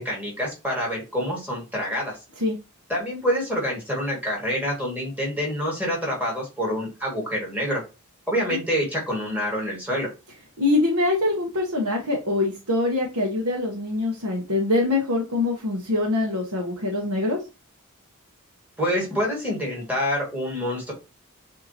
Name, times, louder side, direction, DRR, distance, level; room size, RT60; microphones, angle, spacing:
voice 1, 0.0-2.2 2.9-7.8 8.3-10.1 18.8-20.9, equal, 5° right, -3 dB, 2.0 m, -27 dB
voice 2, 10.6-17.4, left 2 dB, 80° right, -2 dB, 1.1 m, -24 dB
6.4 x 2.9 x 2.8 m, 0.29 s
head